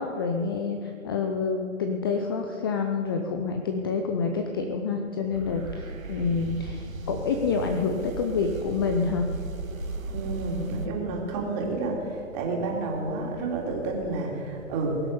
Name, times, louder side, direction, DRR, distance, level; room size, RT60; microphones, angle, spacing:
voice 1, 0.0-9.3, left 5 dB, 20° left, 4 dB, 0.5 m, -28 dB
sound 1, 5.3-10.9, right 3 dB, 80° right, 1.6 m, -36 dB
voice 2, 10.1-15.0, right 3 dB, 30° right, -1 dB, 3.4 m, -30 dB
22.0 x 7.6 x 6.9 m, 2.6 s
figure-of-eight pair, 130°, 40 cm